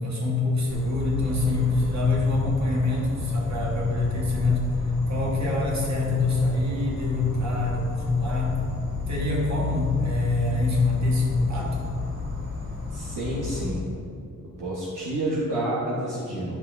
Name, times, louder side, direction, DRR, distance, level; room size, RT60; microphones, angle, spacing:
voice 1, 0.0-8.6 9.1-11.9, left 3 dB, 60° right, -2 dB, 1.6 m, -25 dB
Insect, 0.7-13.7, left 3 dB, 30° right, 1.3 m, -32 dB
voice 2, 12.9-13.9 14.6-16.6, right 1 dB, 75° right, -6 dB, 1.2 m, -29 dB
11.0 x 6.0 x 2.6 m, 2.5 s
wide cardioid pair, 90°, 32 cm